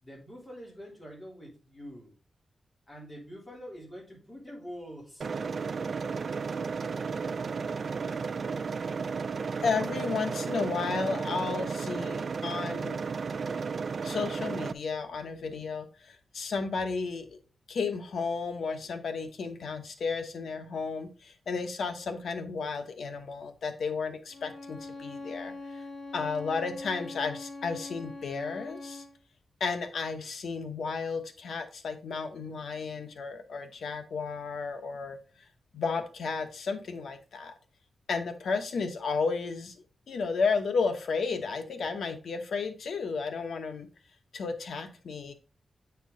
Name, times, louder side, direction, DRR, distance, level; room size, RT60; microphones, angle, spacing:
voice 1, 0.0-2.1 2.9-5.3, equal, 20° left, -2 dB, 3.3 m, -45 dB
sound 1, 5.2-14.7, right 5 dB, 50° right, 0.4 m, -33 dB
voice 2, 9.6-13.1 14.0-17.4 17.7-25.8 26.1-29.0 29.6-35.2 35.7-37.5 38.1-39.7 40.1-43.9 44.3-45.3, left 4 dB, 80° left, 7 dB, 1.1 m, -33 dB
Bowed string instrument, 24.3-29.2, left 2 dB, 50° left, 1.4 m, -42 dB
8.3 x 4.6 x 3.9 m, 0.36 s
wide cardioid pair, 145°, 0 cm